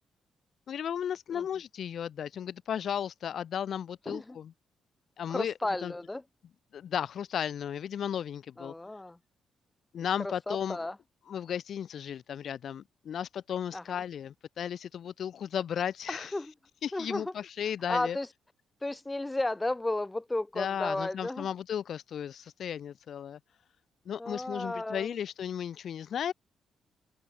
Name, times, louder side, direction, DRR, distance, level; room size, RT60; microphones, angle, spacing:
voice 1, 0.7-4.5 5.2-5.5 5.8-5.9 6.7-8.7 9.9-10.8 11.3-16.3 16.8-18.2 20.6-23.4 24.1-26.3, left 9 dB, 65° left, 0.9 m, -35 dB
voice 2, 4.1-4.4 5.3-6.2 8.6-9.2 10.2-11.0 13.7-14.0 16.1-16.5 16.9-17.3 17.9-18.3 18.8-21.5 24.2-25.2, left 2 dB, 15° left, 4.1 m, -33 dB
open air
supercardioid pair, 65°, 0 cm